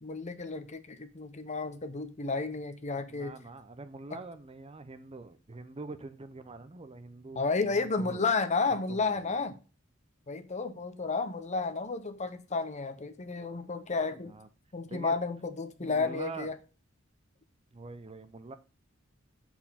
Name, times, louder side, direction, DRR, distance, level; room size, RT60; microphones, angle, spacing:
voice 1, 0.0-3.4 4.1-4.2 7.4-9.6 10.3-14.3 14.7-16.5, left 4 dB, 35° left, 0.8 m, -32 dB
voice 2, 3.1-7.4 7.7-8.2 8.9-9.4 14.3-14.5 14.9-15.1 15.8-16.5 17.7-18.6, right 3 dB, 30° right, 0.6 m, -44 dB
7.8 x 4.4 x 5.7 m
head